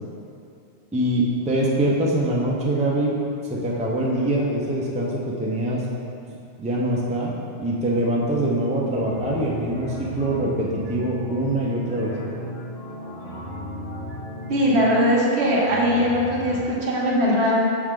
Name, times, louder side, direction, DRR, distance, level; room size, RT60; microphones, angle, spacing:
voice 1, 0.9-3.2 3.5-5.8 6.3-12.1, right 1 dB, 10° right, -4 dB, 0.5 m, -24 dB
sound 1, 8.9-16.6, left 1 dB, 60° left, 1.3 m, -36 dB
voice 2, 14.5-17.6, equal, 70° right, -5 dB, 1.3 m, -20 dB
6.3 x 4.8 x 3.7 m, 2.6 s
omnidirectional pair, 1.2 m